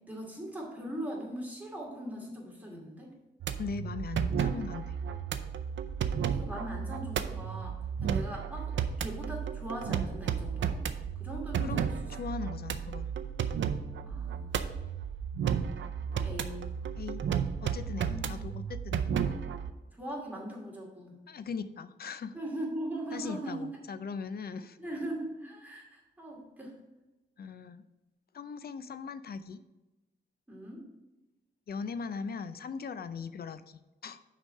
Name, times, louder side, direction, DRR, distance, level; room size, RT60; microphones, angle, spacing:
voice 1, 0.1-3.1 6.3-8.7 9.0-11.9 14.0-14.6 15.5-15.8 16.1-16.7 18.1-18.2 20.0-21.2 22.3-23.8 24.8-26.8 30.5-30.9, right 1 dB, 10° right, -3 dB, 2.4 m, -40 dB
sound 1, 3.4-19.7, right 7 dB, 90° right, 0.5 m, -33 dB
voice 2, 3.6-5.0 8.0-8.2 11.6-13.1 17.0-17.2 17.6-19.1 21.3-22.4 23.1-24.8 27.4-27.8 28.3-29.6 31.7-34.2, left 5 dB, 55° left, 12 dB, 0.5 m, -39 dB
6.2 x 5.0 x 5.5 m, 1.1 s
wide cardioid pair, 110°, 19 cm